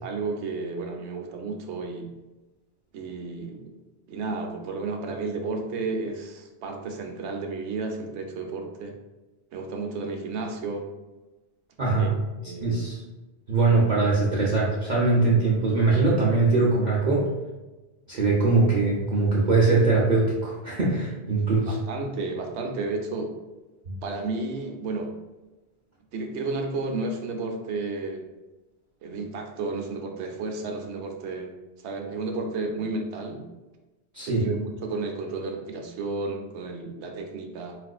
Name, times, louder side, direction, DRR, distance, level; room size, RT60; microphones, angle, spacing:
voice 1, 0.0-2.1 2.9-3.7 4.1-9.0 9.5-10.9 12.0-12.1 12.4-12.8 21.5-23.3 24.0-25.1 26.1-28.2 29.0-31.5 31.8-33.5 34.2-37.8, right 3 dB, 85° right, 3 dB, 0.9 m, -32 dB
voice 2, 11.8-12.1 12.6-13.0 13.5-17.3 18.1-21.8 23.9-24.0 34.1-34.5, right 3 dB, 50° right, -6 dB, 0.6 m, -22 dB
4.1 x 2.5 x 2.3 m, 1.1 s
omnidirectional pair, 1.1 m